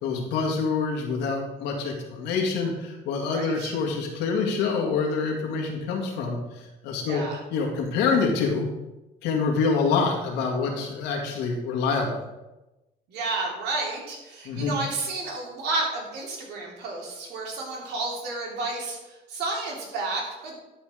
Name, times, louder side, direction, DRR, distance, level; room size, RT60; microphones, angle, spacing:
voice 1, 0.0-7.2 7.5-8.7 9.2-12.2 14.4-14.8, left 4 dB, 90° left, 0 dB, 2.2 m, -26 dB
voice 2, 3.3-3.7 7.0-7.4 13.1-20.5, right 3 dB, 80° right, -2 dB, 3.1 m, -31 dB
11.5 x 5.2 x 5.0 m, 1.0 s
cardioid pair, 110°, 17 cm